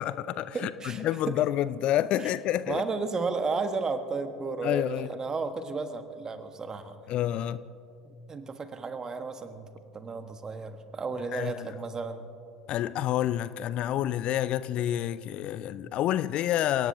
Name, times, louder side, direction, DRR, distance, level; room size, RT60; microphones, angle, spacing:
voice 1, 0.0-0.7 1.0-2.8 4.6-5.1 7.1-7.7 11.3-11.7 12.7-16.9, left 12 dB, 45° left, 0.4 m, -28 dB
voice 2, 0.5-1.4 2.2-2.3 2.7-7.0 8.0-12.3, right 4 dB, 25° right, 1.3 m, -33 dB
28.5 x 17.5 x 2.7 m
figure-of-eight pair, 65°, 2 cm